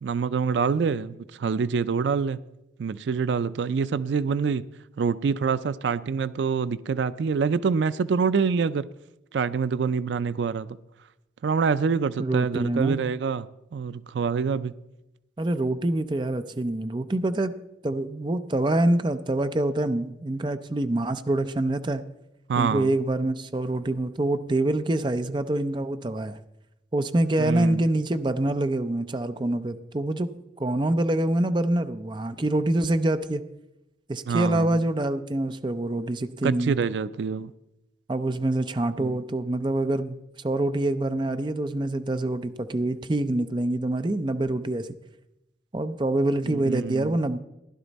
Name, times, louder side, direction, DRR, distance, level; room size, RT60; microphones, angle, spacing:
voice 1, 0.0-2.4 2.8-4.6 5.0-8.9 9.3-10.8 11.4-14.7 22.5-22.9 27.4-27.8 34.3-34.8 36.4-37.5 39.0-39.2 46.5-47.2, right 5 dB, 85° right, 0.4 m, -26 dB
voice 2, 12.2-13.0 15.4-17.5 17.8-22.0 22.6-26.4 26.9-30.3 30.6-33.4 34.1-36.8 38.1-44.9 45.7-47.4, right 1 dB, 25° right, 0.5 m, -26 dB
15.5 x 11.0 x 4.1 m
head